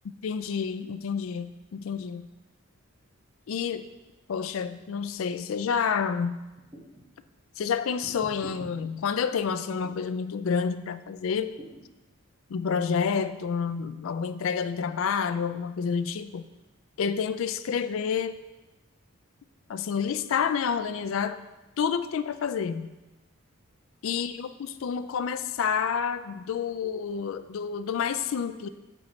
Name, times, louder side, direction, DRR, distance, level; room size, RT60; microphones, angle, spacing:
voice 1, 0.2-2.3 3.5-3.9 4.3-6.4 7.6-11.5 12.5-16.4 17.0-18.4 19.7-21.4 21.8-22.9 24.0-28.7, left 6 dB, 65° left, 11 dB, 0.3 m, -29 dB
sound 1, 6.6-7.1 8.0-8.7 9.8-10.1 11.6-11.9, equal, 20° right, 1.4 m, -44 dB
7.6 x 7.0 x 3.1 m, 1.1 s
head